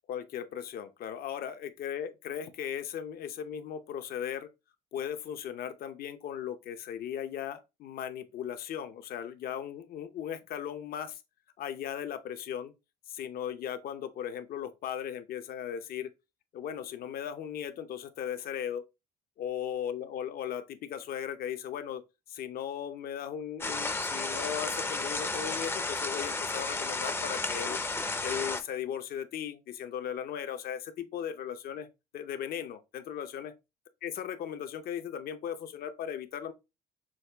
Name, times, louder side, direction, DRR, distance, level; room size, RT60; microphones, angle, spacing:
voice 1, 0.1-4.5 4.9-11.2 11.6-12.7 13.1-16.1 16.5-18.8 19.4-22.0 22.3-27.8 28.2-31.9 32.1-33.6 34.0-36.5, left 9 dB, 60° left, 0.7 m, -37 dB
sound 1, 23.6-28.6, left 3 dB, 15° left, 0.5 m, -33 dB
6.2 x 2.3 x 3.4 m
cardioid pair, 110°, 17 cm